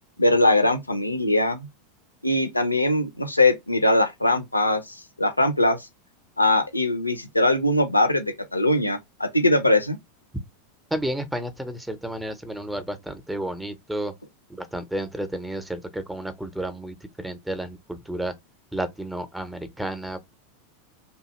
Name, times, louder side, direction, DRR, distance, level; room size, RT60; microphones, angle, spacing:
voice 1, 0.2-1.7 2.2-5.8 6.4-10.0, left 1 dB, 90° left, 0.5 m, -21 dB
voice 2, 10.9-14.1 14.5-18.3 18.7-20.2, right 1 dB, 5° right, 0.6 m, -31 dB
2.7 x 2.3 x 3.0 m
figure-of-eight pair, 85°, 0 cm